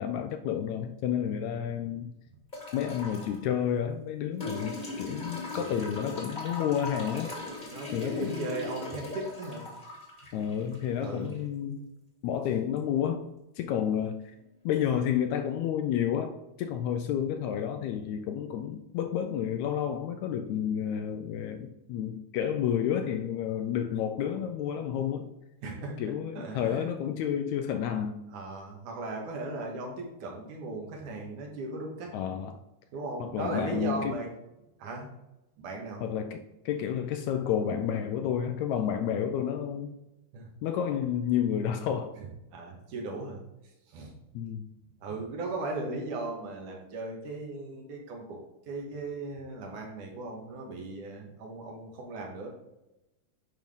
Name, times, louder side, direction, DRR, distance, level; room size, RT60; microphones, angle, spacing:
voice 1, 0.0-2.1 2.7-7.3 7.9-8.5 10.3-11.9 12.2-13.3 13.6-14.1 14.6-25.3 26.0-28.2 32.1-32.6 33.2-34.2 36.0-36.4 36.6-39.9 40.6-42.2 44.3-44.6, left 9 dB, 80° left, 6 dB, 1.7 m, -30 dB
sound 1, 2.5-3.4 4.4-11.4 12.8-12.9, left 2 dB, 20° left, 1.3 m, -39 dB
voice 2, 5.5-5.9 7.6-9.6 10.8-11.4 25.6-26.0 26.4-26.9 28.3-32.1 32.9-34.3 34.8-35.1 35.6-36.0 40.3-40.5 42.2-43.4 43.9-44.1 45.0-48.4 48.7-52.5, right 2 dB, 75° right, 0 dB, 2.8 m, -37 dB
8.9 x 5.6 x 3.6 m, 0.94 s
omnidirectional pair, 3.7 m